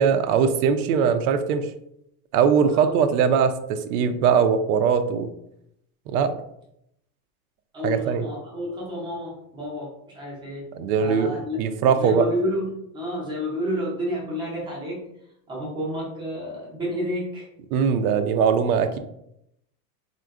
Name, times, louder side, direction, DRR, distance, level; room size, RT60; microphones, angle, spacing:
voice 1, 0.0-1.7 2.3-5.3 6.1-6.3 7.8-8.2 10.7-11.3 11.6-12.3 17.7-19.0, right 6 dB, 85° right, 9 dB, 0.5 m, -21 dB
voice 2, 2.7-3.0 7.7-10.7 11.0-11.6 12.0-15.1 15.5-17.5, equal, 10° right, -4 dB, 0.5 m, -30 dB
3.7 x 2.1 x 2.3 m, 0.77 s
supercardioid pair, 165°, 43 cm